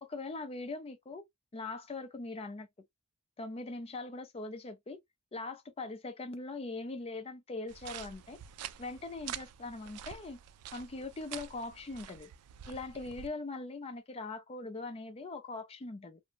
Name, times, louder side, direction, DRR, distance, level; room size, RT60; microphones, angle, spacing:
voice 1, 0.0-1.2 1.5-2.7 3.4-5.0 5.3-8.4 8.8-10.4 10.7-12.3 12.7-16.2, left 3 dB, 25° left, 0.4 m, -41 dB
sound 1, 7.7-13.3, right 10 dB, 90° right, 0.3 m, -47 dB
2.6 x 2.1 x 2.8 m
head